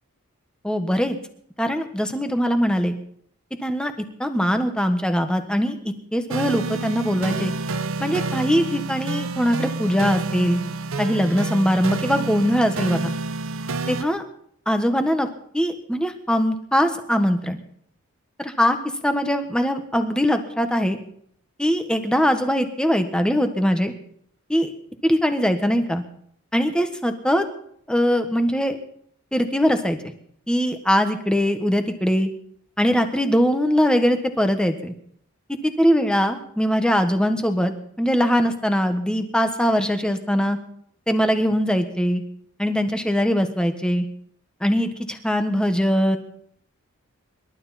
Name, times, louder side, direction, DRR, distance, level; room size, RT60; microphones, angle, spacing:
voice 1, 0.6-1.2 1.6-2.9 3.6-3.9 4.2-5.8 6.1-7.5 8.0-10.6 11.0-13.1 13.9-14.2 14.7-15.3 15.5-17.6 18.4-18.8 19.0-21.0 21.6-23.9 24.5-24.7 25.0-26.0 26.5-27.4 27.9-28.8 29.3-30.0 30.5-32.3 32.8-34.9 35.6-40.6 41.1-42.2 42.6-44.0 44.6-46.2, equal, 5° left, 7 dB, 1.3 m, -21 dB
sound 1, 6.3-14.0, right 3 dB, 70° right, 0.8 m, -28 dB
26.5 x 12.0 x 4.2 m, 0.66 s
head